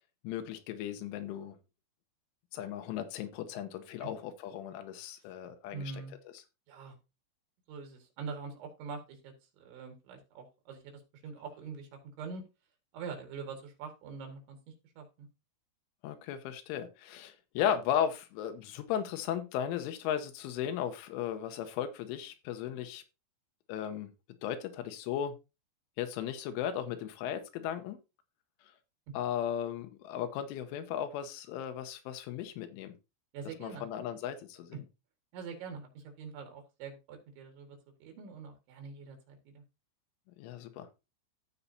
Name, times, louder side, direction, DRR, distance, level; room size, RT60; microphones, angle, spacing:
voice 1, 0.3-1.6 2.5-6.0 6.3-6.4 16.0-23.0 23.7-24.1 24.4-25.3 26.0-28.0 29.1-32.9 33.6-34.8 40.4-40.9, left 9 dB, 90° left, 8 dB, 3.4 m, -36 dB
voice 2, 5.7-6.1 6.7-7.0 7.7-11.9 12.2-12.4 12.9-14.6 15.0-15.3 33.3-33.9 35.3-39.6, right 5 dB, 75° right, 4 dB, 4.0 m, -44 dB
15.0 x 5.5 x 2.7 m, 0.27 s
omnidirectional pair, 5.6 m